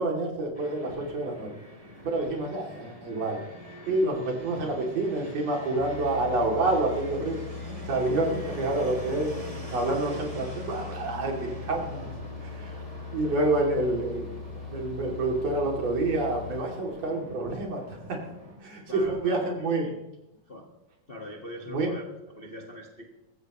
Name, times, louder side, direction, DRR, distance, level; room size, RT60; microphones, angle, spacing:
voice 1, 0.0-1.5 2.0-3.4 3.9-7.4 7.8-9.3 9.7-12.1 12.4-12.7 13.1-14.2 14.7-18.2 18.6-19.8 21.7-21.9, right 2 dB, 50° right, 0 dB, 3.7 m, -28 dB
Fixed-wing aircraft airplane, 0.5-18.6, equal, 10° right, 3.1 m, -44 dB
sound 1, 5.8-16.6, left 4 dB, 55° left, 0.8 m, -40 dB
voice 2, 18.9-20.0 20.4-20.7 21.1-23.2, left 1 dB, 80° left, 1 dB, 0.5 m, -43 dB
24.0 x 14.5 x 3.1 m, 0.95 s
omnidirectional pair, 4.0 m